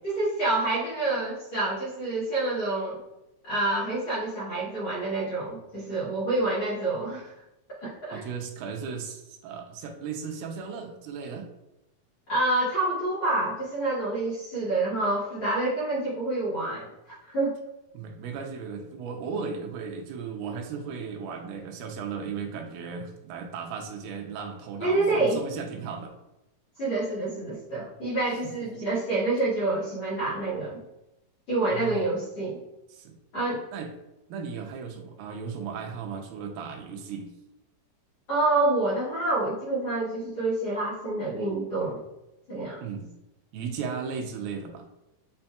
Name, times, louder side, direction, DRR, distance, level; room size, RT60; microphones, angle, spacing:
voice 1, 0.0-3.0 3.5-7.3 7.8-8.2 12.3-17.5 24.8-25.4 26.8-30.8 31.5-32.6 33.3-33.6 38.3-42.0 42.5-42.8, right 2 dB, 50° left, -12 dB, 1.5 m, -27 dB
voice 2, 8.1-11.5 17.9-26.2 31.7-32.0 32.9-33.1 33.5-33.9 34.3-37.3 42.8-43.1 43.5-44.9, right 6 dB, 85° right, 4 dB, 2.4 m, -36 dB
7.5 x 2.8 x 2.3 m, 0.92 s
omnidirectional pair, 4.2 m